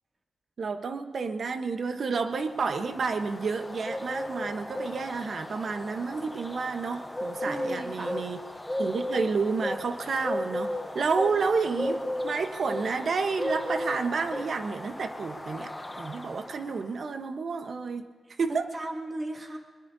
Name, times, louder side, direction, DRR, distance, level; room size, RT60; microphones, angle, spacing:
voice 1, 0.6-8.4 8.8-15.7 16.0-18.1 18.4-18.7, right 4 dB, 55° right, 7 dB, 1.1 m, -30 dB
sound 1, 2.2-16.8, left 1 dB, 10° left, 0.8 m, -35 dB
voice 2, 7.4-8.4 18.7-19.6, right 2 dB, 30° right, 0 dB, 2.4 m, -36 dB
22.0 x 21.5 x 2.8 m, 1.5 s
cardioid pair, 100°, 0 cm